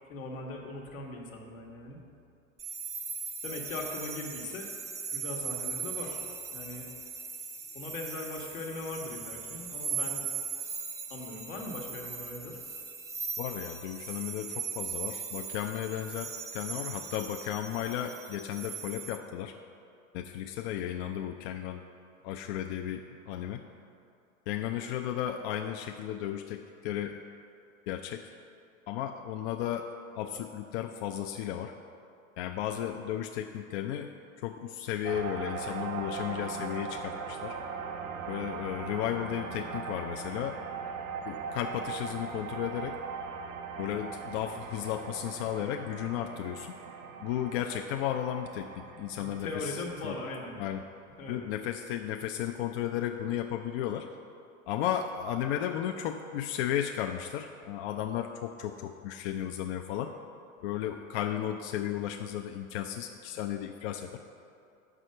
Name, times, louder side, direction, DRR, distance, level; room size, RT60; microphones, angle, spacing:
voice 1, 0.1-2.0 3.4-4.7 5.1-6.2 6.5-6.9 7.7-10.2 11.1-12.6 49.2-50.6 51.2-51.4, left 2 dB, 80° left, 0 dB, 1.3 m, -39 dB
sound 1, 2.6-19.2, right 6 dB, 10° right, 0.3 m, -39 dB
voice 2, 13.4-19.5 20.1-21.8 22.2-23.6 24.5-27.2 27.9-28.3 28.9-29.9 30.1-31.7 32.4-34.1 34.4-37.6 38.3-40.6 41.3-43.0 43.8-46.7 47.2-49.8 50.0-50.2 50.6-50.8 51.3-54.1 54.7-60.1 60.6-64.2, left 10 dB, 55° left, 5 dB, 0.5 m, -34 dB
sound 2, 35.0-50.4, right 5 dB, 75° right, 0.8 m, -40 dB
5.7 x 4.8 x 6.4 m, 2.5 s
hypercardioid pair, 95°, 40 cm